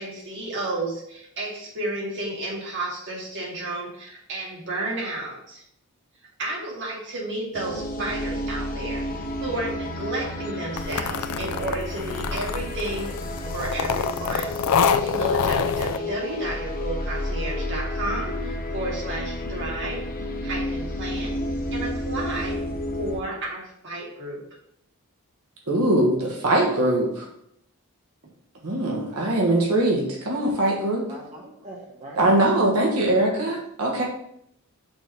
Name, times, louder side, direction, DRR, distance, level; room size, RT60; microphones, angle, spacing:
voice 1, 0.0-5.6 6.4-13.1 13.5-14.5 14.9-21.4 21.7-22.6 23.0-24.4, right 2 dB, 55° right, -3 dB, 2.2 m, -32 dB
sound 1, 7.5-23.2, left 1 dB, 40° left, 1.0 m, -31 dB
sound 2, 10.8-16.0, left 7 dB, 80° left, 0.4 m, -26 dB
voice 2, 25.7-27.3 28.6-31.1 32.2-34.0, right 1 dB, 75° right, -1 dB, 1.5 m, -22 dB
voice 3, 31.1-32.5 33.4-33.5, right 1 dB, 30° right, -3 dB, 1.0 m, -42 dB
6.1 x 3.7 x 5.7 m, 0.74 s
head